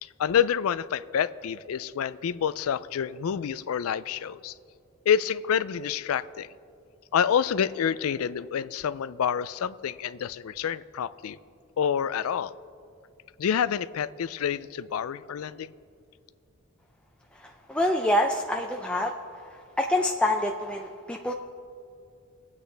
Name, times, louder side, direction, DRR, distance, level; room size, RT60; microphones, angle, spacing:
voice 1, 0.0-4.5 5.1-6.5 7.1-11.4 11.8-12.5 13.4-15.7, left 8 dB, 85° left, 15 dB, 0.4 m, -28 dB
voice 2, 17.4-19.1 19.8-21.3, left 1 dB, 5° left, 1 dB, 0.4 m, -26 dB
22.5 x 8.3 x 3.4 m, 2.4 s
head